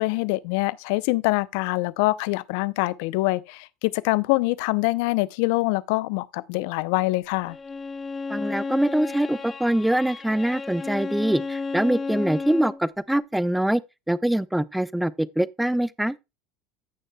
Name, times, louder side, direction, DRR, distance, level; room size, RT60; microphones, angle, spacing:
voice 1, 0.0-7.6, left 21 dB, 70° left, 0.5 m, -24 dB
Bowed string instrument, 7.5-12.8, left 4 dB, 25° left, 1.0 m, -32 dB
voice 2, 8.3-13.8 14.1-16.2, right 1 dB, 5° right, 0.6 m, -24 dB
15.0 x 6.4 x 2.3 m
hypercardioid pair, 80°, 0 cm